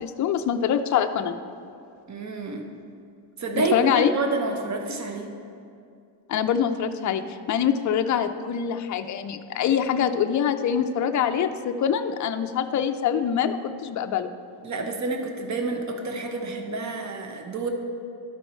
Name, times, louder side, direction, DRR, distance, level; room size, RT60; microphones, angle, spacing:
voice 1, 0.0-1.4 3.5-4.1 6.3-7.2 7.5-14.3, left 8 dB, 40° left, 7 dB, 0.4 m, -24 dB
voice 2, 2.1-2.7 3.4-5.3 14.6-17.7, right 3 dB, 35° right, 4 dB, 0.9 m, -28 dB
12.5 x 4.5 x 4.3 m, 2.5 s
cardioid pair, 110°, 46 cm